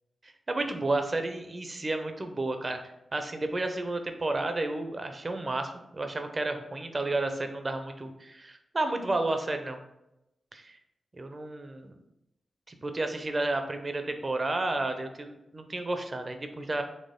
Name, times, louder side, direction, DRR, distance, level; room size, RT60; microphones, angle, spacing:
voice 1, 0.5-2.8 3.1-9.8 10.5-10.8 11.2-12.0 12.7-16.8, right 2 dB, 45° right, 6 dB, 0.6 m, -31 dB
4.4 x 3.0 x 3.6 m, 0.88 s
supercardioid pair, 40°, 0 cm